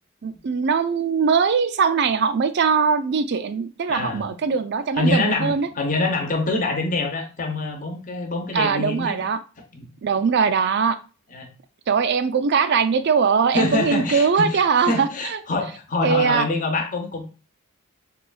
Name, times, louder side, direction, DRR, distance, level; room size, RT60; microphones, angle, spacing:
voice 1, 0.2-5.7 8.5-9.4 10.0-10.9 11.9-15.4 16.0-16.5, right 5 dB, 50° right, 10 dB, 0.4 m, -21 dB
voice 2, 3.9-4.2 4.9-9.2 9.7-9.9 11.3-11.5 13.5-17.2, left 2 dB, 35° left, 3 dB, 0.8 m, -25 dB
6.7 x 2.3 x 2.3 m, 0.34 s
head